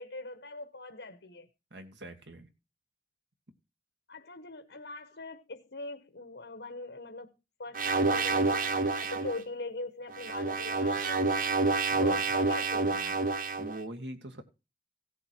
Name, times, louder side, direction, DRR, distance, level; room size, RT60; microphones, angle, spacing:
voice 1, 0.0-1.5 4.1-11.6 12.0-13.2, left 2 dB, 90° left, 1.3 m, -42 dB
voice 2, 1.7-2.5 11.9-12.2 13.6-14.4, right 1 dB, 85° right, 2.0 m, -43 dB
sound 1, 7.7-9.4 10.1-13.8, right 3 dB, 50° right, 1.0 m, -28 dB
16.5 x 7.8 x 4.5 m
head